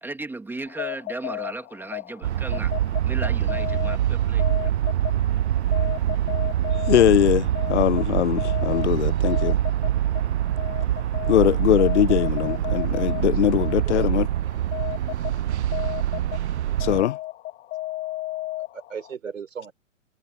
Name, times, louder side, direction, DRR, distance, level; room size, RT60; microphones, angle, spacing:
voice 1, 0.0-2.7 3.0-4.7, right 2 dB, 5° right, 2.1 m, -36 dB
sound 1, 0.7-19.1, left 17 dB, 25° left, 3.3 m, -35 dB
sound 2, 2.2-17.0, right 12 dB, 60° right, 0.8 m, -24 dB
voice 2, 6.9-9.6 11.3-14.3 16.8-17.2, left 12 dB, 60° left, 1.0 m, -21 dB
voice 3, 13.1-14.3 18.6-19.7, right 6 dB, 75° right, 5.2 m, -38 dB
hypercardioid pair, 125°, 39 cm